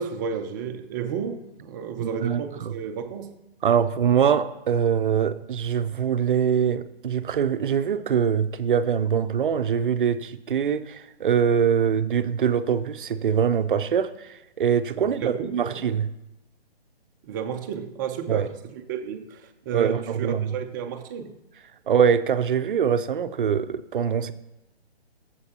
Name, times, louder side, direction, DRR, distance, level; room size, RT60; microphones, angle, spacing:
voice 1, 0.0-3.3 15.0-15.8 17.2-21.4, right 7 dB, 20° right, 5 dB, 0.7 m, -32 dB
voice 2, 2.0-2.7 3.6-16.1 18.3-18.5 19.7-20.5 21.9-24.3, right 7 dB, 55° right, 12 dB, 0.7 m, -23 dB
20.5 x 7.8 x 2.9 m, 0.96 s
hypercardioid pair, 145°, 32 cm